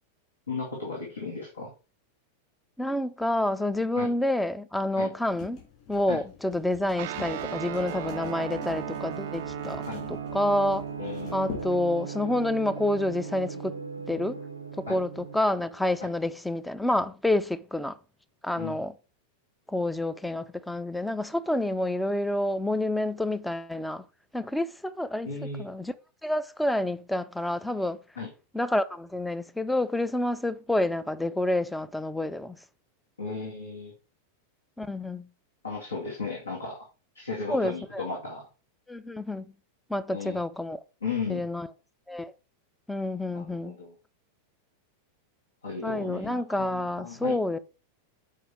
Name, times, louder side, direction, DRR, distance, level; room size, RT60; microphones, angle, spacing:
voice 1, 0.5-1.7 4.0-4.1 4.9-5.1 6.1-6.2 9.9-10.0 11.0-11.5 14.9-15.0 16.0-16.1 18.6-18.8 25.2-25.6 28.2-28.3 33.2-33.9 35.6-36.9 37.1-38.5 40.1-40.4 41.0-41.5 43.3-43.9 45.6-47.4, left 4 dB, 75° left, 2.1 m, -35 dB
voice 2, 2.8-5.6 5.9-9.8 10.1-10.8 11.3-13.8 14.1-14.4 14.8-18.0 18.4-18.9 19.7-24.0 24.3-25.3 25.6-25.9 26.2-28.0 28.5-32.6 34.8-35.3 37.5-38.0 38.9-39.5 39.9-40.8 41.3-41.7 42.1-42.3 42.9-43.8 45.8-47.6, left 1 dB, 5° left, 0.6 m, -28 dB
sound 1, 5.3-11.8, left 9 dB, 40° left, 3.9 m, -45 dB
Guitar, 7.0-15.5, right 12 dB, 50° right, 0.5 m, -38 dB
sound 2, 7.3-16.6, right 1 dB, 90° right, 0.8 m, -42 dB
7.5 x 5.0 x 4.6 m
figure-of-eight pair, 90°, 0 cm